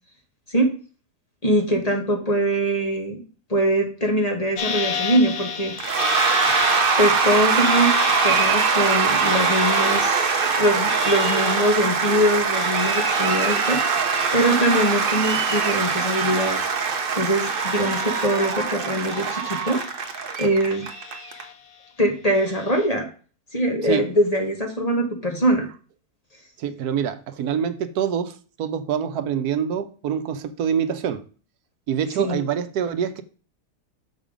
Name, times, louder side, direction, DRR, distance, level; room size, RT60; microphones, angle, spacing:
voice 1, 1.4-3.2 3.5-5.7 7.0-8.0 8.2-14.1 14.3-16.6 17.2-19.8 20.4-20.9 22.0-23.1 23.5-25.7 32.2-32.4, right 1 dB, 25° left, 1.3 m, -22 dB
sound 1, 4.6-17.1 17.4-18.7 19.1-20.3 20.7-21.8 22.3-22.9, left 7 dB, 80° left, 1.5 m, -34 dB
Cheering / Applause / Crowd, 5.8-21.4, right 5 dB, 45° right, 0.9 m, -22 dB
voice 2, 26.6-31.2 31.9-33.2, right 8 dB, 85° right, 1.2 m, -25 dB
6.3 x 5.3 x 5.0 m
omnidirectional pair, 1.6 m